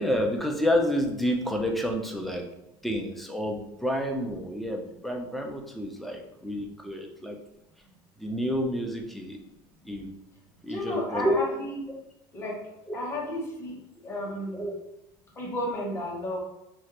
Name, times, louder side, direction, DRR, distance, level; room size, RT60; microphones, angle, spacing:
voice 1, 0.0-2.5 2.8-7.4 8.2-9.4 9.8-10.1 10.6-11.5 12.9-13.0 14.5-14.8, equal, ahead, 1 dB, 0.4 m, -29 dB
voice 2, 10.7-11.8 12.3-12.6 12.9-14.6 15.4-16.4, left 1 dB, 20° left, -3 dB, 1.0 m, -33 dB
3.1 x 2.4 x 2.9 m, 0.85 s
supercardioid pair, 135°, 12 cm